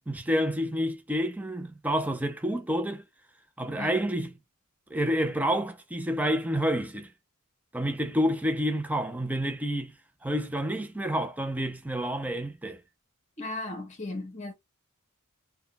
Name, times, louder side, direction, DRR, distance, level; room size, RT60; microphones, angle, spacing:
voice 1, 0.1-3.0 3.6-4.4 4.9-7.1 7.7-10.0 10.2-12.8, equal, 5° right, 0.5 m, -29 dB
voice 2, 13.4-14.5, left 2 dB, 30° left, 0.8 m, -36 dB
3.5 x 2.2 x 2.2 m
head